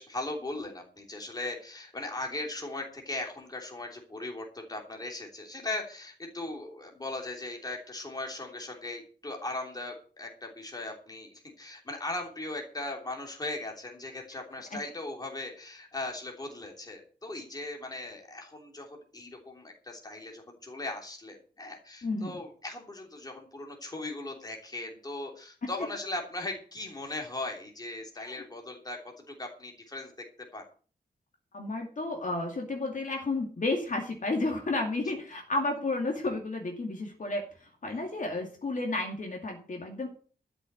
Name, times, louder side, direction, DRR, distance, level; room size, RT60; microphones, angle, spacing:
voice 1, 0.0-30.1 30.4-30.6 37.9-38.2, left 2 dB, 20° left, 1 dB, 3.1 m, -38 dB
voice 2, 22.0-22.3 28.2-28.4 31.5-40.1, left 2 dB, 45° left, 2 dB, 2.4 m, -32 dB
12.5 x 6.3 x 8.1 m, 0.41 s
wide cardioid pair, 170°, 18 cm